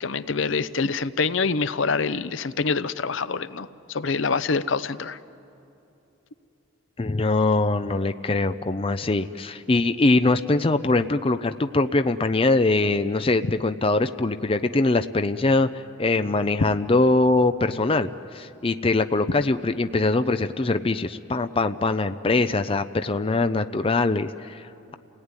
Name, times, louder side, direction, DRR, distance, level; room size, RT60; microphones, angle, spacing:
voice 1, 0.0-5.2, left 4 dB, 70° left, 14 dB, 0.7 m, -26 dB
voice 2, 7.0-24.9, left 2 dB, 30° left, 10 dB, 0.5 m, -22 dB
30.0 x 17.5 x 9.7 m, 2.8 s
head